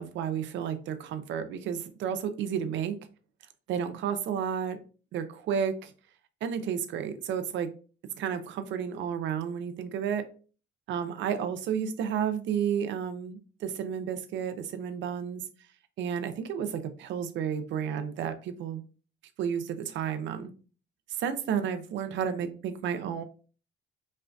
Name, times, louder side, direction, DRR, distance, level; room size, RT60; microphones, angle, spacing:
voice 1, 0.0-3.0 3.7-4.8 5.1-5.9 6.4-7.7 8.2-10.2 10.9-15.4 16.0-18.8 19.4-20.5 21.2-23.2, right 8 dB, 70° right, 10 dB, 0.6 m, -32 dB
5.4 x 2.5 x 2.3 m, 0.38 s
cardioid pair, 115°, 20 cm